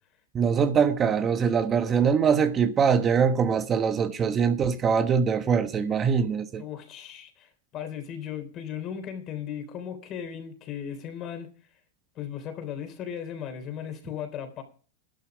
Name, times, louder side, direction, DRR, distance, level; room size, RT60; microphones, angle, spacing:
voice 1, 0.3-6.6, right 6 dB, 25° right, 1.1 m, -23 dB
voice 2, 6.6-11.5 12.2-14.6, left 8 dB, 35° left, 3.7 m, -36 dB
12.0 x 12.0 x 5.0 m
hypercardioid pair, 120°, 0 cm